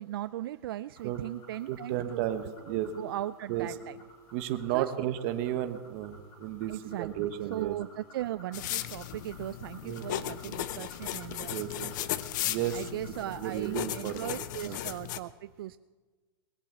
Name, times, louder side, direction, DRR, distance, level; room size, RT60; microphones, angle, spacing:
voice 1, 0.0-2.2 2.7-4.0 4.7-4.9 6.7-11.5 12.7-15.8, right 14 dB, 70° right, 14 dB, 0.4 m, -38 dB
sound 1, 0.9-14.9, equal, 30° left, 4.0 m, -56 dB
voice 2, 1.7-2.9 3.5-3.7 4.3-7.8 9.8-10.5 11.5-11.9 12.5-12.8 13.4-14.3 14.6-14.8, right 12 dB, 40° right, 9 dB, 1.0 m, -33 dB
sound 2, 8.5-15.2, left 13 dB, 50° left, 0.7 m, -36 dB
20.0 x 7.1 x 8.0 m, 1.3 s
supercardioid pair, 165°, 13 cm